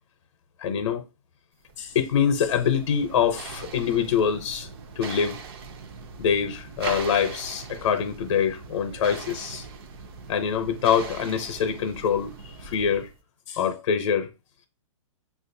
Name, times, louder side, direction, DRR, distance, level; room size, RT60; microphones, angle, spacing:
voice 1, 0.6-1.0 1.8-4.7 5.0-5.4 6.2-9.6 10.3-12.4 12.6-13.1 13.5-14.3, left 7 dB, 55° left, 0.6 m, -24 dB
sound 1, 1.7-13.2, right 5 dB, 45° right, 0.5 m, -40 dB
6.2 x 2.5 x 2.6 m
hypercardioid pair, 165°, 17 cm